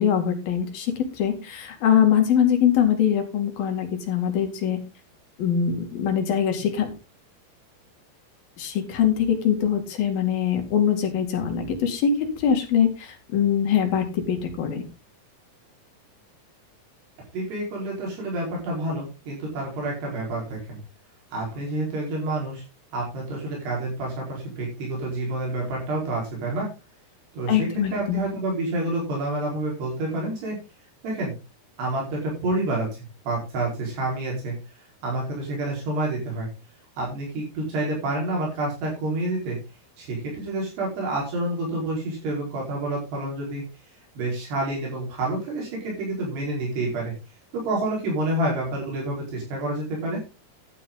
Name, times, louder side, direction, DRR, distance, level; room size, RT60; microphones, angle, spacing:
voice 1, 0.0-4.8 5.4-6.9 8.6-14.8 27.5-28.3, left 8 dB, 65° left, 4 dB, 3.9 m, -23 dB
voice 2, 17.3-20.8 21.3-22.6 22.9-26.7 27.3-30.6 31.0-31.4 31.8-34.5 35.0-36.5 37.0-39.6 40.0-43.6 44.2-47.1 47.5-50.2, right 2 dB, 80° right, -3 dB, 6.7 m, -28 dB
12.0 x 9.3 x 3.8 m, 0.28 s
omnidirectional pair, 4.7 m